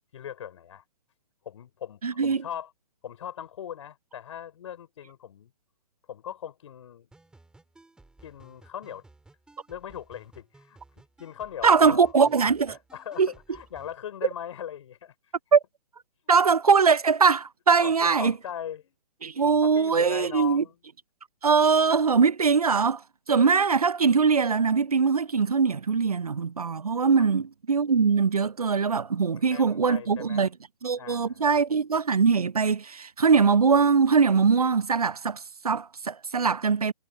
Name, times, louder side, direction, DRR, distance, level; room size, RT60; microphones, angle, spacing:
voice 1, 0.1-0.8 1.4-2.7 3.0-5.5 6.1-7.1 8.2-9.0 9.7-10.8 11.2-12.1 12.7-15.1 17.8-19.0 19.6-20.7 27.2-27.3 29.3-30.5 31.0-31.5, left 9 dB, 55° left, 5.3 m, -39 dB
voice 2, 2.0-2.4 11.6-12.8 13.2-13.3 15.5-15.6 16.3-18.3 19.2-20.6 21.4-23.0 23.3-30.5 30.8-36.9, right 5 dB, 85° right, 0.7 m, -22 dB
sound 1, 7.1-14.0, right 2 dB, 5° right, 4.8 m, -56 dB
figure-of-eight pair, 130°, 19 cm